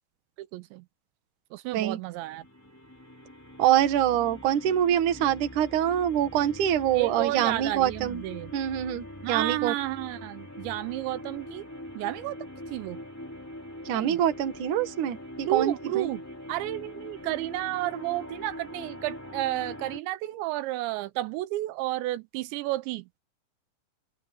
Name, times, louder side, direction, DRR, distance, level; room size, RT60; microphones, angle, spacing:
voice 1, 0.4-0.9 1.5-2.4 7.0-8.5 9.2-11.7 12.0-12.4 12.7-13.0 13.9-14.2 15.5-16.2 16.5-23.1, right 16 dB, 85° right, 3.1 m, -31 dB
sound 1, 2.1-20.0, left 1 dB, 5° left, 2.5 m, -43 dB
voice 2, 3.6-8.2 8.5-9.7 13.9-16.1, right 11 dB, 55° right, 2.7 m, -25 dB
omnidirectional pair, 5.1 m